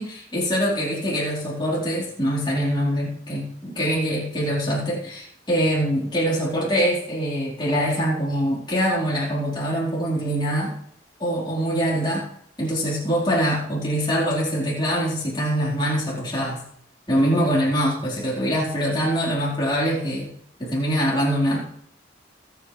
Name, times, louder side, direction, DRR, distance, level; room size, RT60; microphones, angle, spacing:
voice 1, 0.0-10.7 11.2-12.3 12.6-16.6 17.1-20.3 20.6-21.6, equal, 25° left, -5 dB, 4.3 m, -24 dB
25.0 x 8.4 x 3.4 m, 0.72 s
head